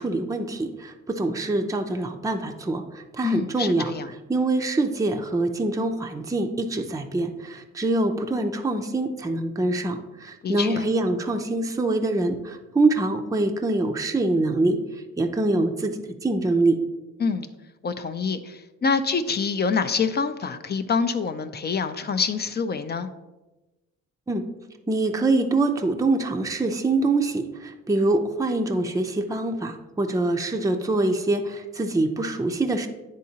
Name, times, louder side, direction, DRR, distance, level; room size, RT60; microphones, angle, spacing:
voice 1, 0.0-2.8 3.2-3.9 4.3-14.8 15.2-15.9 16.2-16.8 24.3-24.4 24.9-32.9, right 2 dB, 10° right, 5 dB, 0.6 m, -24 dB
voice 2, 3.2-4.1 10.4-10.8 17.2-17.5 17.8-23.1, left 5 dB, 35° left, 9 dB, 0.5 m, -26 dB
10.0 x 3.7 x 2.8 m, 1.1 s
cardioid pair, 90°, 30 cm